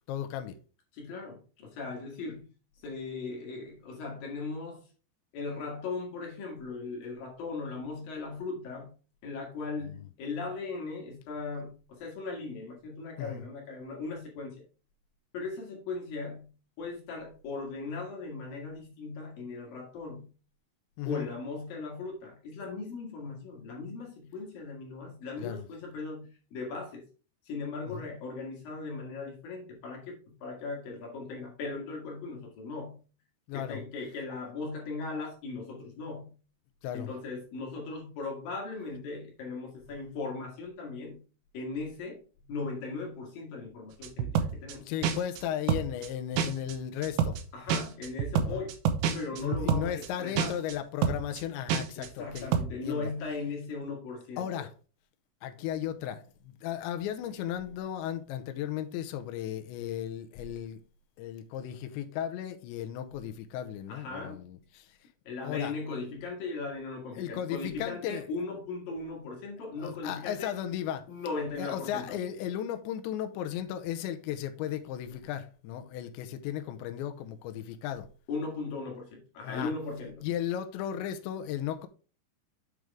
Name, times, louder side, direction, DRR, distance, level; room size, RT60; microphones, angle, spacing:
voice 1, 0.1-0.6 13.2-13.4 21.0-21.3 25.4-25.6 27.9-28.1 33.5-33.8 36.8-37.1 44.9-47.4 48.3-48.6 49.3-53.1 54.4-54.7 55.4-60.8 61.2-64.9 65.4-65.7 67.2-68.2 69.8-71.1 71.6-78.1 79.4-79.7 80.2-81.9, left 10 dB, 85° left, 3.0 m, -35 dB
voice 2, 0.9-4.8 5.3-8.9 9.2-14.6 15.3-20.3 21.1-27.0 27.4-33.0 33.5-36.4 36.9-41.2 41.5-42.2 42.5-44.8 47.5-48.7 49.1-50.7 52.0-54.7 63.9-64.5 65.2-70.5 71.1-72.2 78.3-80.3, left 3 dB, 60° left, 3.2 m, -38 dB
sound 1, 44.0-44.7 45.0-45.4 45.7-46.1 46.4-46.7 47.0-47.4 47.7-50.1 50.4-50.7 51.0-51.4 51.7-52.1 52.4-52.6, right 7 dB, 75° right, 2.7 m, -28 dB
7.9 x 6.2 x 3.5 m
omnidirectional pair, 5.2 m